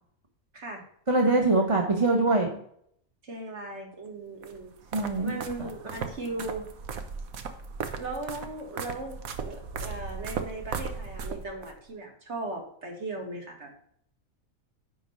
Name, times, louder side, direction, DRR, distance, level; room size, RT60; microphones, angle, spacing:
voice 1, 0.5-0.8 1.8-2.1 3.2-4.7 5.2-6.7 8.0-13.9, right 2 dB, 50° right, 1 dB, 2.2 m, -38 dB
voice 2, 1.1-2.5 4.9-5.3 5.6-5.7, right 2 dB, 25° right, 2 dB, 1.1 m, -23 dB
sound 1, 4.4-11.7, right 5 dB, 75° right, 1.3 m, -37 dB
10.0 x 3.9 x 5.5 m, 0.66 s
omnidirectional pair, 1.5 m